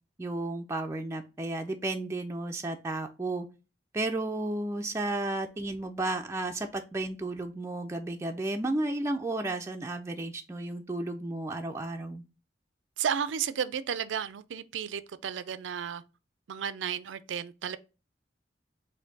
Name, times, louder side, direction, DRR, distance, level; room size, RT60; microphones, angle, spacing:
voice 1, 0.2-3.5 3.9-12.2, right 2 dB, 15° right, 0.3 m, -33 dB
voice 2, 13.0-16.0 16.5-17.8, right 8 dB, 90° right, 0.4 m, -33 dB
4.3 x 2.6 x 3.9 m
head